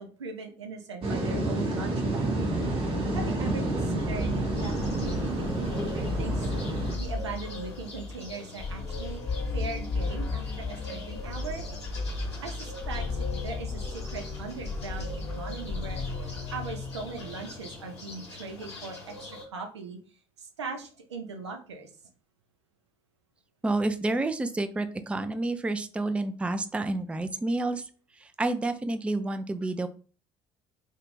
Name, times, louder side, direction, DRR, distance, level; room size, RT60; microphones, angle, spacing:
voice 1, 0.0-2.4 3.1-6.5 7.0-9.2 9.5-11.7 12.4-16.0 16.5-20.0 20.4-21.9, right 4 dB, 85° right, 4 dB, 0.5 m, -39 dB
sound 1, 1.0-6.9, right 2 dB, 40° right, 0.8 m, -29 dB
sound 2, 2.4-18.1, left 3 dB, 25° left, 0.9 m, -35 dB
sound 3, 4.0-19.5, left 3 dB, 80° left, 0.6 m, -44 dB
voice 2, 23.6-27.8 28.2-29.9, right 2 dB, 10° right, 10 dB, 0.3 m, -29 dB
2.4 x 2.2 x 3.1 m, 0.38 s
figure-of-eight pair, 50°, 14 cm